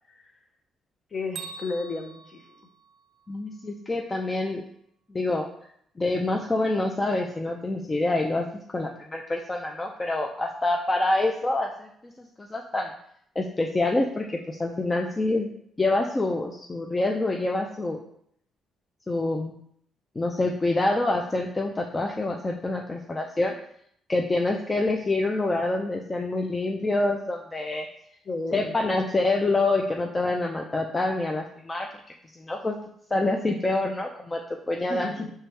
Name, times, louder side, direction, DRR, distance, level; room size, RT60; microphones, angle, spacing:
voice 1, 1.1-2.4 28.3-28.7 34.9-35.3, left 3 dB, 40° left, 4 dB, 0.7 m, -33 dB
Bell, 1.3-3.4, right 5 dB, 65° right, 0.4 m, -43 dB
voice 2, 3.3-4.6 5.1-5.5 6.0-8.5 8.7-12.9 13.4-15.5 15.8-18.0 19.1-19.6 20.2-23.5 24.1-27.9 28.5-31.9 32.3-32.8 33.1-34.4 34.7-35.1, left 2 dB, 25° left, 2 dB, 0.4 m, -26 dB
4.6 x 3.4 x 3.2 m, 0.69 s
cardioid pair, 90°, 0 cm